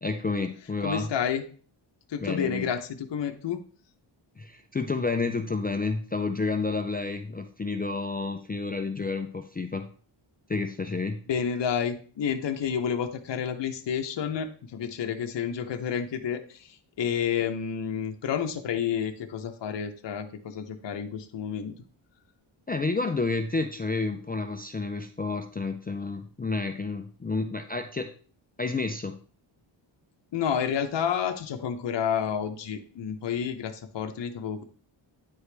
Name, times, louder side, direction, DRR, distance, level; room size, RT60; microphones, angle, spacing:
voice 1, 0.0-1.1 2.2-2.7 4.4-9.9 10.5-11.2 22.7-28.1 28.6-29.2, left 3 dB, 20° left, 6 dB, 0.4 m, -30 dB
voice 2, 0.8-1.4 2.1-3.6 11.3-21.8 30.3-34.6, left 8 dB, 60° left, 5 dB, 0.8 m, -30 dB
9.3 x 4.9 x 3.3 m, 0.41 s
wide cardioid pair, 155°, 48 cm